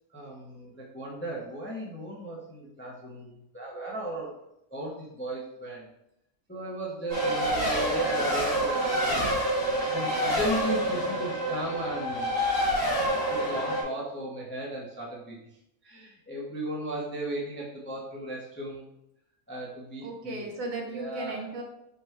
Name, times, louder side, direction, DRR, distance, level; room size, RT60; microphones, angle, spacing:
voice 1, 0.1-4.3 4.7-5.9 6.5-9.3 9.9-12.4 12.8-12.9 13.3-15.4 15.8-18.9 19.5-20.5 20.9-21.4, right 1 dB, 10° left, -4 dB, 0.5 m, -36 dB
Race car auto racing, 7.1-13.8, equal, 80° right, 2.0 m, -27 dB
voice 2, 20.0-21.6, right 2 dB, 65° right, 1 dB, 1.1 m, -36 dB
5.1 x 2.3 x 4.5 m, 0.82 s
omnidirectional pair, 1.6 m